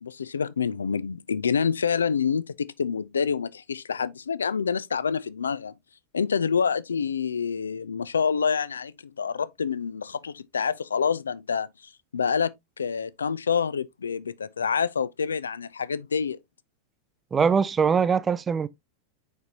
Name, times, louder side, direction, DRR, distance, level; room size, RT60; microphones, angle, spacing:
voice 1, 0.0-5.7 6.1-16.4, left 6 dB, 70° left, 0.4 m, -27 dB
voice 2, 17.3-18.7, right 6 dB, 20° right, 0.5 m, -22 dB
6.5 x 5.3 x 2.8 m
figure-of-eight pair, 90°, 0 cm